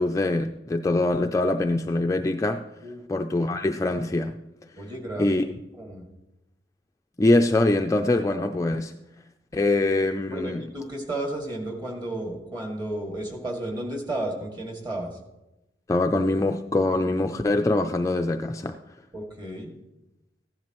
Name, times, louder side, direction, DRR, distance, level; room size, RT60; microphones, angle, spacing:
voice 1, 0.0-2.6 3.1-4.3 5.2-5.4 7.2-8.9 9.5-10.6 15.9-18.8, left 2 dB, 20° left, 5 dB, 0.3 m, -23 dB
voice 2, 4.8-5.4 5.8-6.0 10.3-15.1 19.1-19.7, right 1 dB, 25° right, 1 dB, 2.0 m, -33 dB
15.0 x 10.5 x 3.0 m, 0.94 s
head